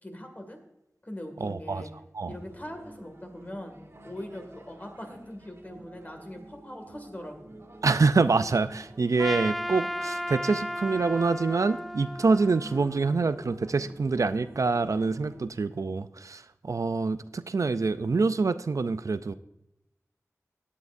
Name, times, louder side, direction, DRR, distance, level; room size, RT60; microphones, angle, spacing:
voice 1, 0.0-0.6 1.0-1.9 2.3-3.8 4.0-7.6, left 1 dB, 30° left, 4 dB, 2.2 m, -41 dB
voice 2, 1.4-1.8 2.1-2.3 7.8-19.3, right 4 dB, 70° right, 12 dB, 0.4 m, -26 dB
sound 1, 2.2-15.5, right 1 dB, 50° right, 1.6 m, -49 dB
Trumpet, 9.2-13.5, equal, ahead, 0.4 m, -35 dB
16.5 x 9.6 x 2.6 m, 0.87 s
wide cardioid pair, 70°, 6 cm